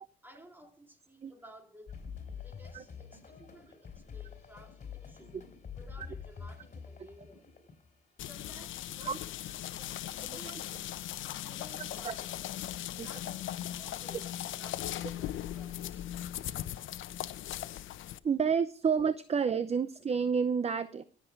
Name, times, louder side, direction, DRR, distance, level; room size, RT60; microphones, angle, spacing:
voice 1, 0.2-1.9 2.4-7.5 8.2-9.7 10.1-10.9 11.4-12.5 12.9-16.1, equal, 10° right, 3.3 m, -56 dB
sound 1, 1.9-7.9, left 6 dB, 40° left, 4.4 m, -46 dB
sound 2, 8.2-18.2, left 12 dB, 75° left, 0.8 m, -39 dB
voice 2, 10.2-10.6 11.8-12.1 13.0-13.1 18.2-21.0, right 6 dB, 30° right, 0.7 m, -30 dB
17.5 x 7.6 x 4.7 m
cardioid pair, 90°, 20 cm